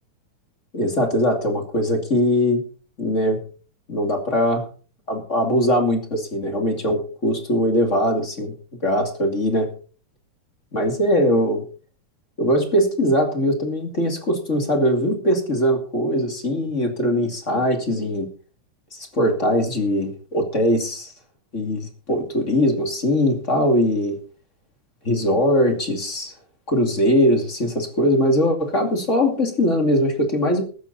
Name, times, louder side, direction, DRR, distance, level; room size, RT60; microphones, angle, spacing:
voice 1, 0.7-2.6 3.0-3.4 3.9-4.6 5.1-8.5 8.8-9.7 10.7-11.6 12.4-18.3 18.9-21.1 21.5-24.2 25.0-26.3 26.7-30.6, equal, 25° left, 4 dB, 2.5 m, -21 dB
15.0 x 12.5 x 4.1 m, 0.38 s
omnidirectional pair, 3.5 m